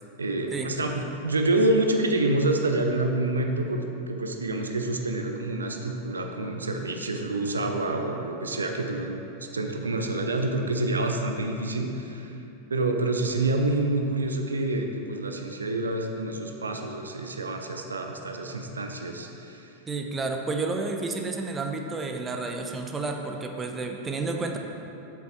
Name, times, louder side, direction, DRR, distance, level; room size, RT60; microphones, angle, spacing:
voice 1, 0.2-9.2 9.5-12.4 12.7-19.7, right 2 dB, 75° right, 4 dB, 0.6 m, -27 dB
voice 2, 19.9-24.6, right 3 dB, 15° right, 3 dB, 0.7 m, -31 dB
8.0 x 7.2 x 4.5 m, 2.8 s
figure-of-eight pair, 90°, 0 cm